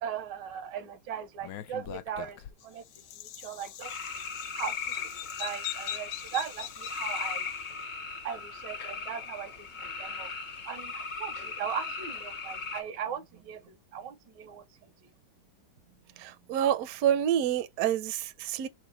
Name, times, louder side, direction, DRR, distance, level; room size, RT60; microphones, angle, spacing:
voice 1, 0.0-2.4 2.6-2.8 3.2-4.0 4.5-4.8 5.4-7.5 8.2-10.3 10.7-14.9, right 8 dB, 85° right, 1.4 m, -38 dB
Bird vocalization bird call bird song, 1.4-7.7, left 12 dB, 85° left, 1.3 m, -42 dB
sound 1, 3.8-12.8, left 5 dB, 70° left, 0.4 m, -38 dB
voice 2, 16.2-18.7, right 10 dB, 70° right, 0.9 m, -28 dB
6.2 x 2.1 x 3.8 m
omnidirectional pair, 1.9 m